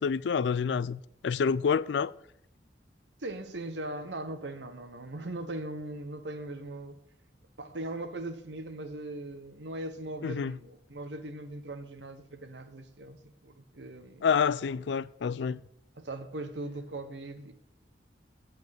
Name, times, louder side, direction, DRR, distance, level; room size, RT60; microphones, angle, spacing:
voice 1, 0.0-2.1 10.2-10.6 14.2-15.6, left 6 dB, 75° left, 0.4 m, -28 dB
voice 2, 3.2-7.0 7.6-14.3 16.0-17.5, right 1 dB, 80° right, 1.2 m, -39 dB
8.6 x 8.2 x 6.7 m
head